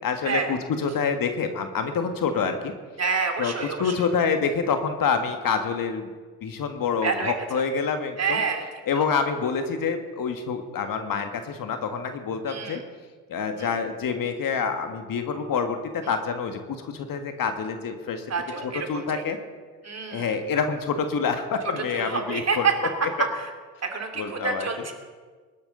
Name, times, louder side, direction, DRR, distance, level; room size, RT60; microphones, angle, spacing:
voice 1, 0.0-2.7 3.4-3.5 3.8-6.1 6.4-8.4 8.9-12.8 13.3-18.2 18.6-19.4 20.1-22.7 23.0-23.1 24.2-24.7, left 5 dB, 45° left, 7 dB, 1.7 m, -27 dB
voice 2, 3.0-4.1 7.0-7.4 8.2-8.6 9.0-9.1 12.5-12.8 13.6-13.7 18.3-19.2 19.8-20.3 21.9-22.7 23.2-23.5 23.8-24.9, right 5 dB, 30° right, 4 dB, 2.9 m, -28 dB
22.0 x 12.5 x 4.0 m, 1.5 s
hypercardioid pair, 60°, 47 cm